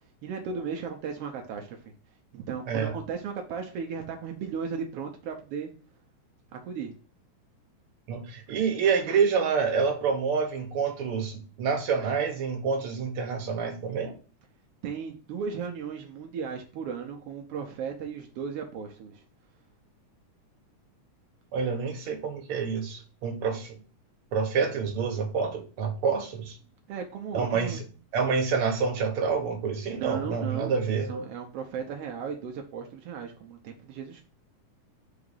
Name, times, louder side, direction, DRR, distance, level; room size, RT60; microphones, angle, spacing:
voice 1, 0.2-1.8 2.3-5.7 6.5-6.9 14.8-19.2 26.9-27.8 29.9-30.8 31.1-34.2, right 6 dB, 80° right, 3 dB, 1.3 m, -36 dB
voice 2, 8.1-14.1 21.5-23.8 24.3-26.6 27.3-27.8 28.1-31.3, right 5 dB, 55° right, 3 dB, 1.6 m, -27 dB
4.9 x 3.9 x 5.3 m, 0.36 s
omnidirectional pair, 3.6 m